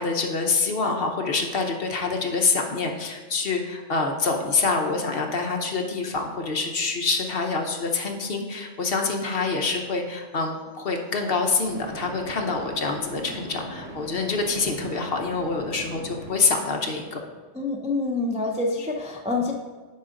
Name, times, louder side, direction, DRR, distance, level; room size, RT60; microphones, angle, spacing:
voice 1, 0.0-17.2, left 4 dB, 50° left, 3 dB, 1.0 m, -26 dB
sound 1, 11.7-16.3, right 1 dB, 75° right, 1.5 m, -40 dB
voice 2, 17.5-19.5, left 3 dB, 10° right, 0 dB, 0.4 m, -26 dB
9.7 x 4.9 x 3.8 m, 1.4 s
omnidirectional pair, 1.3 m